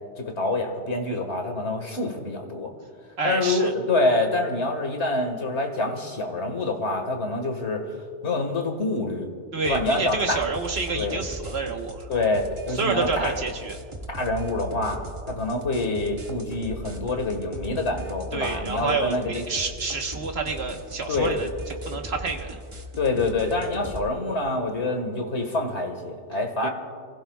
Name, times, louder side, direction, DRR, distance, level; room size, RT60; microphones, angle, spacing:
voice 1, 0.2-2.7 3.2-7.9 8.2-9.3 9.6-10.4 10.9-11.2 12.1-13.3 14.1-15.0 15.3-19.5 21.1-21.4 23.0-26.7, left 2 dB, 75° left, 4 dB, 2.0 m, -26 dB
voice 2, 3.2-3.7 9.5-12.1 12.7-13.8 18.3-22.6 26.6-26.7, right 4 dB, 65° right, 3 dB, 1.6 m, -28 dB
sound 1, 9.6-24.1, right 1 dB, 30° right, 1.1 m, -39 dB
29.0 x 16.0 x 2.4 m, 2.1 s
omnidirectional pair, 1.2 m